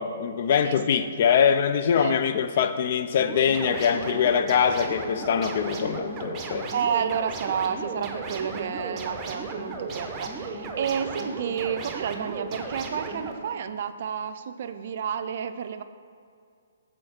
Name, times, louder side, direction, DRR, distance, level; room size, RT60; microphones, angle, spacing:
voice 1, 0.0-6.7, left 7 dB, 50° left, 10 dB, 0.5 m, -23 dB
voice 2, 0.6-1.1 2.0-2.2 6.7-15.8, right 7 dB, 55° right, 10 dB, 0.4 m, -30 dB
sound 1, 3.2-13.3, right 3 dB, 20° right, 0.8 m, -35 dB
6.3 x 4.4 x 5.8 m, 2.3 s
hypercardioid pair, 140°, 0 cm